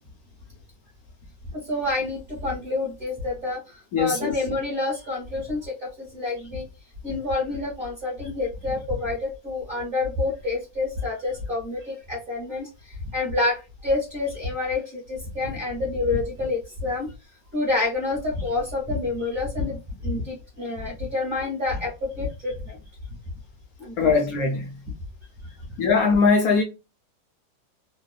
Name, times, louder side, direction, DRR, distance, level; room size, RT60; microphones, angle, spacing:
voice 1, 1.5-6.6 7.0-17.1 17.5-22.8 23.8-24.1 25.4-25.8, left 3 dB, 30° right, 1.1 m, -28 dB
voice 2, 3.9-4.3 24.0-24.8 25.8-26.6, left 4 dB, 75° left, 0.8 m, -20 dB
3.2 x 2.1 x 2.2 m
omnidirectional pair, 2.1 m